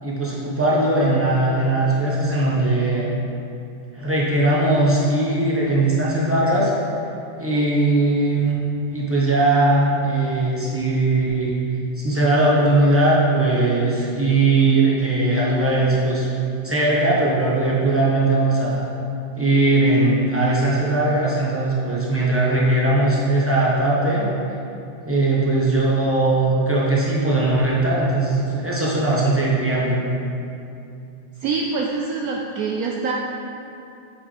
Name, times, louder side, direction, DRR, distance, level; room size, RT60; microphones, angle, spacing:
voice 1, 0.0-3.1 3.9-6.7 7.4-8.6 8.9-11.5 12.0-16.3 16.6-18.9 19.3-24.3 25.0-30.0, right 2 dB, 20° right, -7 dB, 0.4 m, -19 dB
voice 2, 31.4-33.1, right 4 dB, 90° right, -1 dB, 0.7 m, -25 dB
5.9 x 5.4 x 4.9 m, 2.7 s
omnidirectional pair, 2.1 m